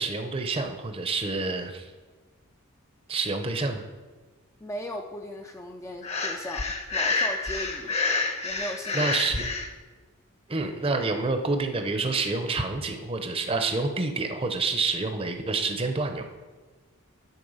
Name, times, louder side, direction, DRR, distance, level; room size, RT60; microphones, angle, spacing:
voice 1, 0.0-1.9 3.1-3.8 8.9-9.4 10.5-16.2, right 3 dB, 25° right, 6 dB, 0.7 m, -28 dB
voice 2, 4.6-8.0 8.4-9.2, left 1 dB, 15° left, 3 dB, 0.3 m, -37 dB
Breathing, 6.0-9.7, left 3 dB, 30° left, 0.7 m, -28 dB
11.0 x 4.4 x 5.5 m, 1.3 s
head